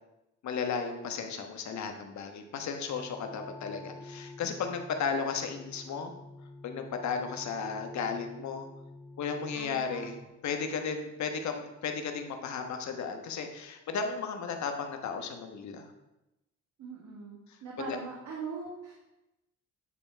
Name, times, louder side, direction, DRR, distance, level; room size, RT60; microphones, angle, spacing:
voice 1, 0.4-6.1 6.6-8.7 9.2-10.1 10.4-15.9 17.8-18.0, left 5 dB, 65° left, 5 dB, 1.3 m, -34 dB
sound 1, 2.9-10.3, left 2 dB, 10° left, 1.1 m, -48 dB
voice 2, 9.5-10.1 16.8-18.9, right 5 dB, 70° right, -3 dB, 1.8 m, -41 dB
9.8 x 3.7 x 5.6 m, 0.95 s
cardioid pair, 90°, 30 cm